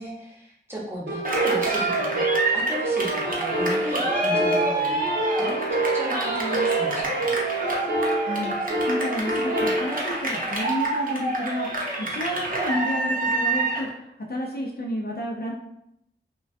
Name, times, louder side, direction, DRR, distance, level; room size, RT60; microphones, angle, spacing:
voice 1, 0.0-7.3, right 1 dB, 10° right, -5 dB, 0.8 m, -35 dB
sound 1, 1.1-9.8, right 2 dB, 90° right, 0.8 m, -27 dB
Cheering, 1.3-13.9, right 2 dB, 45° right, 0.6 m, -27 dB
voice 2, 8.2-8.6 8.9-15.5, left 1 dB, 55° left, -2 dB, 0.4 m, -31 dB
2.2 x 2.2 x 2.5 m, 0.79 s
wide cardioid pair, 55°, 19 cm